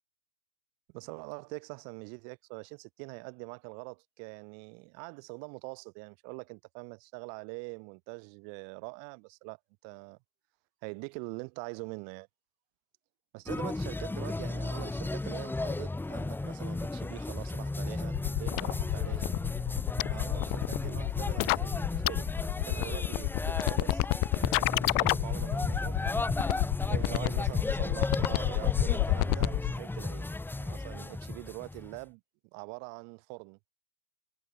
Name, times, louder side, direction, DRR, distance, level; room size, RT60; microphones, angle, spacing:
voice 1, 0.9-9.6 9.8-10.2 10.8-12.3 13.3-19.3 20.1-26.0 26.9-30.3 30.6-32.2 32.5-33.7, right 40 dB or more, 30° right, 7.4 m, -44 dB
sound 1, 13.5-32.0, left 2 dB, 5° left, 7.9 m, -34 dB
sound 2, 18.1-29.7, left 40 dB or more, 30° left, 5.1 m, -29 dB
figure-of-eight pair, 120°, 49 cm